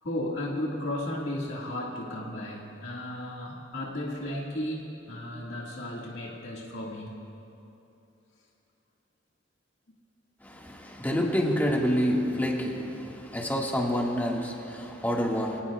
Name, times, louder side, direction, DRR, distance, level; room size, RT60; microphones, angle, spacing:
voice 1, 0.0-7.1, left 1 dB, 80° left, -3 dB, 2.0 m, -34 dB
voice 2, 10.4-15.6, equal, 10° left, -2 dB, 1.8 m, -28 dB
26.0 x 18.5 x 2.4 m, 2.9 s
head